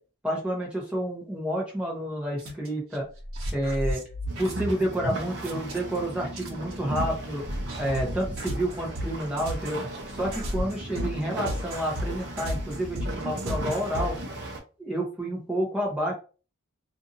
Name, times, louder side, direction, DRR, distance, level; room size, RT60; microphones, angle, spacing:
voice 1, 0.2-3.1 3.5-4.0 4.4-7.4 7.8-9.8 10.1-14.2 14.8-16.1, right 1 dB, 5° right, -3 dB, 0.8 m, -29 dB
sound 1, 2.4-2.7 2.9-6.0 6.4-14.2, equal, 80° right, 1.0 m, -33 dB
sound 2, 4.3-14.6, right 1 dB, 55° right, 0.7 m, -36 dB
2.7 x 2.5 x 2.6 m, 0.35 s
head